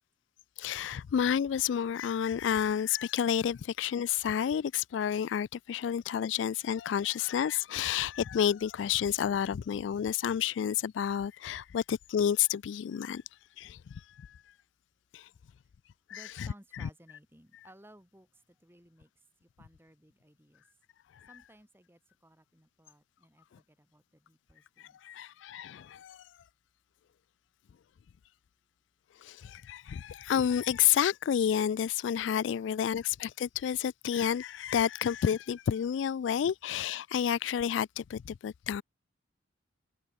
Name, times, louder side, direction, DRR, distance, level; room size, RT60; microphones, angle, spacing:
voice 1, 0.6-13.2 13.6-14.3 15.1-15.3 16.1-16.5 16.7-16.9 24.8-26.2 29.2-38.8, left 9 dB, 80° left, 0.3 m, -30 dB
voice 2, 16.1-19.1 19.4-20.6 21.3-25.2, right 1 dB, 10° right, 3.0 m, -59 dB
head